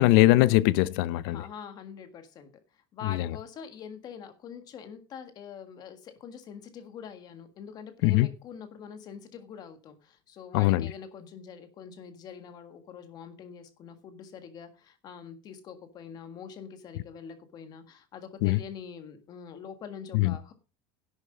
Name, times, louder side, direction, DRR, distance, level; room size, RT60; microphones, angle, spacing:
voice 1, 0.0-1.4 3.0-3.3 8.0-8.3 10.5-10.9 18.4-18.6 20.1-20.3, left 17 dB, 65° left, 0.7 m, -21 dB
voice 2, 1.3-2.5 2.9-20.5, left 7 dB, 30° left, 1.7 m, -44 dB
11.5 x 8.0 x 5.2 m
cardioid pair, 180°, 13 cm